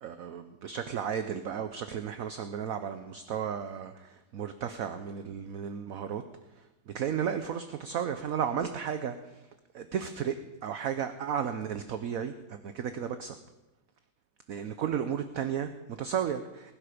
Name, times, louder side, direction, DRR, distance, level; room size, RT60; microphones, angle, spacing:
voice 1, 0.0-6.2 6.9-9.2 9.7-10.4 10.6-13.4 14.5-16.7, right 8 dB, 60° right, 9 dB, 1.1 m, -33 dB
20.5 x 11.0 x 5.1 m, 1.0 s
omnidirectional pair, 2.0 m